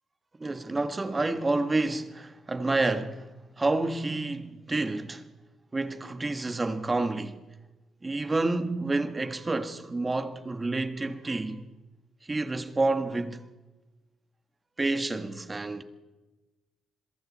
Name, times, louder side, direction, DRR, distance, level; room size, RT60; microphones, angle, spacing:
voice 1, 0.4-5.2 5.7-7.4 8.0-11.6 12.2-13.5 14.8-15.8, right 2 dB, 20° right, 1.7 m, -29 dB
28.0 x 22.0 x 4.3 m
cardioid pair, 90°, 0 cm